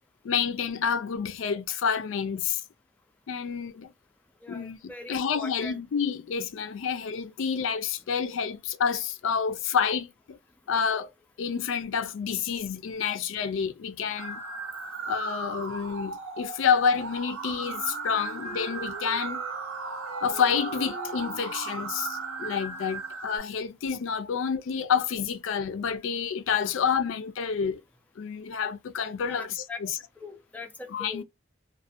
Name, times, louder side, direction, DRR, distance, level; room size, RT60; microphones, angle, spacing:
voice 1, 0.2-2.6 3.3-3.9 4.5-10.4 10.7-11.1 11.4-14.4 15.1-19.4 20.2-27.8 28.2-30.0 30.9-31.2, left 6 dB, 70° left, 0.4 m, -29 dB
voice 2, 4.4-5.8 29.3-29.8 30.2-31.2, left 3 dB, 10° left, 0.4 m, -41 dB
sound 1, 14.2-23.4, right 4 dB, 80° right, 0.6 m, -36 dB
Wind instrument woodwind instrument, 17.3-23.2, right 3 dB, 35° right, 0.6 m, -45 dB
2.4 x 2.2 x 2.5 m
head